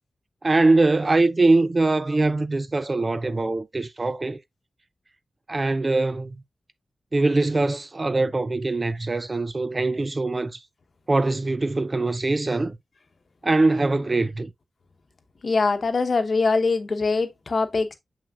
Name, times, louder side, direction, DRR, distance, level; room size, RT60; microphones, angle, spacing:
voice 1, 0.4-4.4 5.5-6.4 7.1-10.6 11.1-12.8 13.4-14.5, right 2 dB, 35° right, 0.4 m, -22 dB
voice 2, 15.4-17.9, left 4 dB, 55° left, 1.0 m, -23 dB
6.5 x 5.9 x 2.4 m
wide cardioid pair, 80°, 0 cm